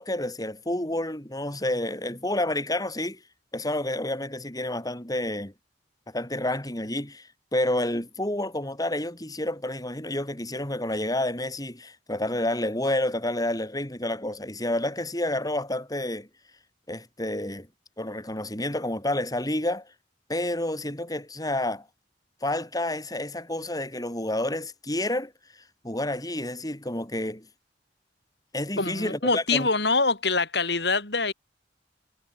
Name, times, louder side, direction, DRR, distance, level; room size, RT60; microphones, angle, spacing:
voice 1, 0.0-3.2 3.5-5.5 6.1-16.3 16.9-17.7 18.0-19.9 20.3-21.9 22.4-25.3 25.8-27.5 28.5-29.7, left 1 dB, 20° left, 7.6 m, -29 dB
voice 2, 28.8-31.3, left 3 dB, 65° left, 7.6 m, -24 dB
head